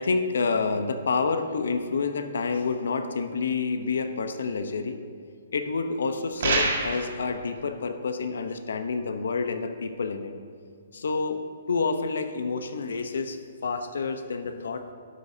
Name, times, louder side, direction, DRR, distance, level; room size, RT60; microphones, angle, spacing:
voice 1, 0.0-5.0 5.5-10.3 10.9-11.4 11.7-14.9, left 4 dB, 85° left, 8 dB, 0.9 m, -28 dB
sound 1, 6.4-7.1, right 3 dB, 60° right, 1.9 m, -25 dB
12.0 x 9.3 x 2.8 m, 2.3 s
hypercardioid pair, 170°, 0 cm